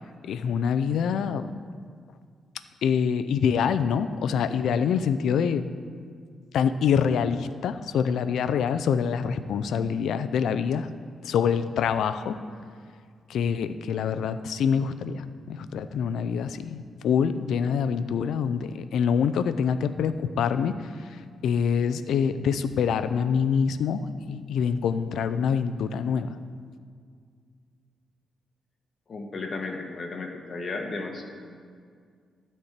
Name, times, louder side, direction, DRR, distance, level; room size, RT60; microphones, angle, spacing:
voice 1, 0.2-1.5 2.8-5.6 6.5-10.9 11.2-12.4 13.3-20.8 21.4-26.4, left 7 dB, 85° left, 12 dB, 0.5 m, -25 dB
voice 2, 29.1-31.2, left 3 dB, 35° left, 3 dB, 1.2 m, -34 dB
13.0 x 4.4 x 8.1 m, 2.1 s
wide cardioid pair, 160°, 0 cm